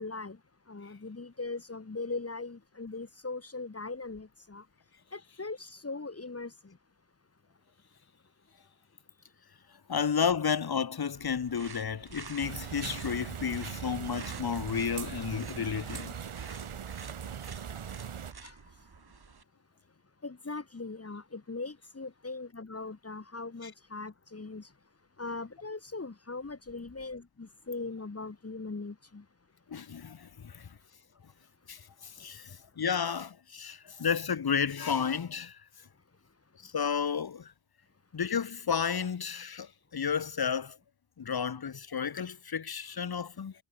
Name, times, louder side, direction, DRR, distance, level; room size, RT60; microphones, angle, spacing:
voice 1, 0.0-4.7 5.1-6.8 18.0-18.9 20.2-24.8 25.2-29.3 30.0-30.1 30.8-30.9 31.9-32.8 35.9-36.7, left 3 dB, 30° left, 2.8 m, -41 dB
voice 2, 9.9-16.1 23.6-23.7 29.7-30.7 31.7-35.6 36.6-37.5 38.1-40.8 41.2-43.5, left 7 dB, 50° left, 1.5 m, -32 dB
sound 1, 11.1-19.4, right 5 dB, 50° right, 4.5 m, -49 dB
sound 2, 12.4-18.3, right 8 dB, 90° right, 3.1 m, -40 dB
wide cardioid pair, 120°, 49 cm